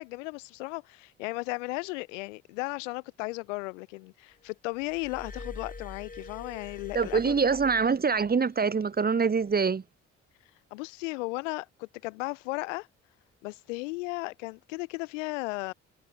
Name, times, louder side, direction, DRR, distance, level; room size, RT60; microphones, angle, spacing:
voice 1, 0.0-7.4 10.7-12.9 13.4-15.7, left 25 dB, 70° left, 1.1 m, -35 dB
Glass, 4.8-8.4 9.4-9.6, left 3 dB, 20° left, 4.3 m, -45 dB
voice 2, 6.9-9.8, right 5 dB, 25° right, 1.1 m, -25 dB
figure-of-eight pair, 45°, 38 cm